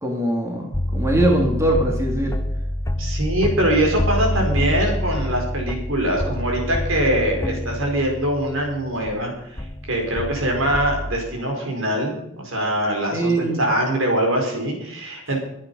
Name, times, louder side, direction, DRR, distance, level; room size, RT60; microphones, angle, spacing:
voice 1, 0.0-2.4 13.1-13.6, right 1 dB, 15° right, 0 dB, 2.3 m, -22 dB
sound 1, 0.7-9.2 9.6-11.2, left 1 dB, 15° left, 0.6 m, -26 dB
voice 2, 3.0-15.4, right 1 dB, 70° right, 2 dB, 4.7 m, -23 dB
22.5 x 9.1 x 5.5 m, 0.79 s
head